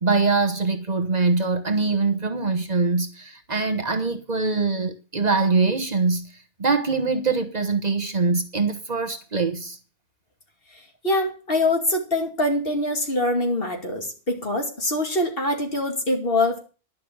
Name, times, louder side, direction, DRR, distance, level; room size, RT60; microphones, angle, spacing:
voice 1, 0.0-6.3 6.6-9.8, right 4 dB, 40° right, 1.1 m, -23 dB
voice 2, 11.0-16.6, left 1 dB, 60° left, 2.7 m, -24 dB
11.5 x 6.1 x 8.6 m
omnidirectional pair, 1.1 m